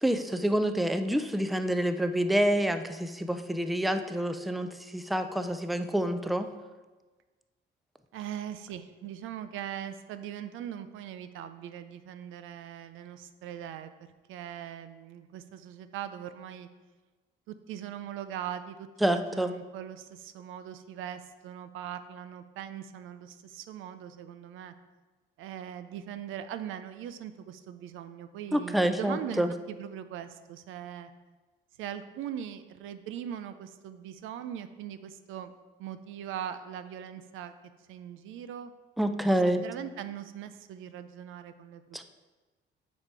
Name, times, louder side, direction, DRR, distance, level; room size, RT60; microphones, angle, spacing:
voice 1, 0.0-6.5 19.0-19.5 28.5-29.5 39.0-39.6 41.9-42.0, right 1 dB, ahead, 8 dB, 0.5 m, -27 dB
voice 2, 8.1-13.9 14.3-16.7 17.5-24.7 25.4-31.1 31.8-35.5 35.8-37.5 37.9-38.7 39.3-42.0, right 10 dB, 85° right, 11 dB, 0.5 m, -40 dB
8.5 x 4.2 x 4.7 m, 1.3 s
cardioid pair, 90°, 20 cm